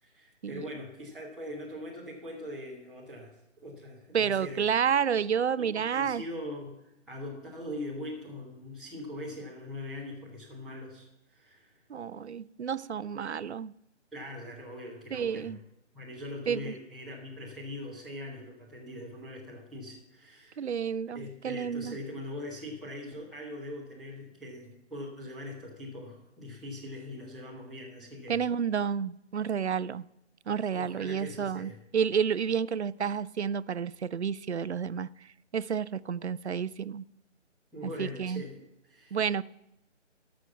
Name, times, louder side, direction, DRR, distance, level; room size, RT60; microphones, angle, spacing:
voice 1, 0.0-3.4 3.6-4.6 5.6-6.8 7.1-11.7 14.1-15.6 15.9-20.7 21.1-28.4 30.7-31.8 37.7-39.2, left 1 dB, ahead, 0.7 m, -42 dB
voice 2, 4.1-6.2 11.9-13.7 15.1-15.6 16.5-16.7 20.6-22.0 28.3-30.1 30.5-35.1 35.5-37.0 38.0-38.4 39.1-39.4, right 7 dB, 65° right, 0.5 m, -30 dB
13.0 x 6.1 x 6.9 m
figure-of-eight pair, 180°, 37 cm